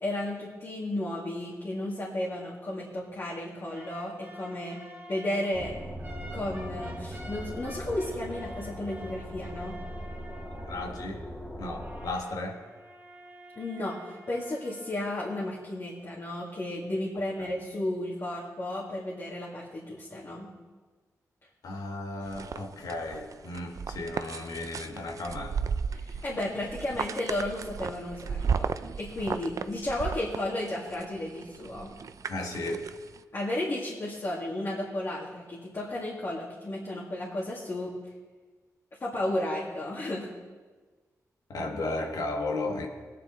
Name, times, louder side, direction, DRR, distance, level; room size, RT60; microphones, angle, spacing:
voice 1, 0.0-4.8 5.1-5.8 6.3-9.8 13.6-20.5 25.9-28.7 29.0-31.9 33.3-37.9 39.0-40.3, left 1 dB, 45° left, -5 dB, 2.3 m, -33 dB
sound 1, 3.7-11.2 11.7-15.7, equal, 35° right, 2.6 m, -49 dB
sound 2, 5.5-12.1, equal, 20° left, 2.3 m, -40 dB
voice 2, 10.7-11.2 11.6-12.6 17.4-17.5 21.6-25.6 32.3-32.9 41.5-42.9, left 2 dB, 85° left, 2 dB, 1.8 m, -34 dB
sound 3, 22.3-33.2, right 6 dB, 65° right, 0.5 m, -35 dB
20.0 x 9.4 x 4.0 m, 1.3 s
wide cardioid pair, 90°, 6 cm